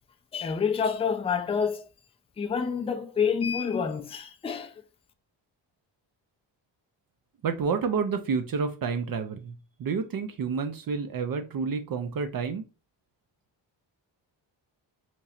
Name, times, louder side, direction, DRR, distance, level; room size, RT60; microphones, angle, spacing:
voice 1, 0.3-1.9 2.4-4.7, left 6 dB, 15° left, 0.3 m, -28 dB
voice 2, 7.4-9.5 9.8-12.6, right 5 dB, 50° right, 0.5 m, -29 dB
4.4 x 2.8 x 2.4 m
cardioid pair, 120°, 46 cm